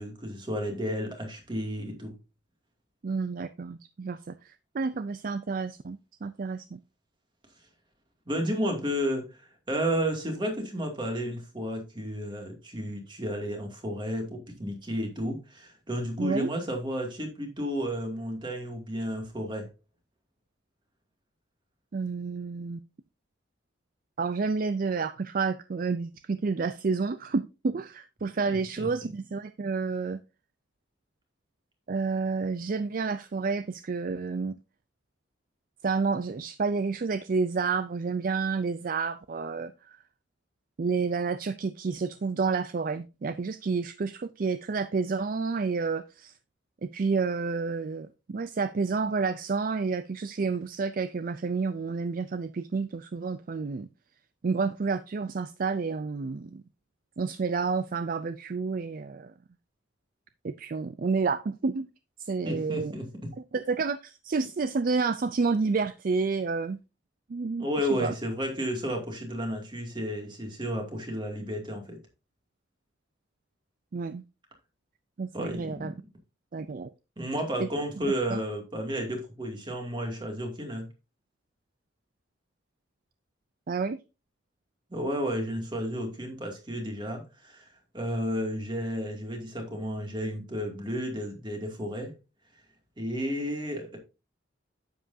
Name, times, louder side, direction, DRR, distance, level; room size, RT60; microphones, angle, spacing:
voice 1, 0.0-2.2 8.3-9.4 9.7-19.7 28.4-29.1 62.4-63.3 67.6-72.0 75.3-75.9 77.2-80.9 84.9-87.6 87.9-92.2 93.0-94.0, equal, 25° right, 2.4 m, -32 dB
voice 2, 3.0-6.8 16.2-16.5 21.9-22.8 24.2-30.2 31.9-34.6 35.8-40.0 40.8-46.3 46.8-53.9 54.4-56.6 57.2-59.3 60.4-61.9 62.2-62.9 63.5-66.8 67.3-68.1 73.9-74.2 75.2-75.9 76.5-76.9 77.6-77.7 78.1-78.4 83.7-84.0, right 4 dB, 45° right, 0.4 m, -30 dB
9.8 x 7.8 x 2.7 m
head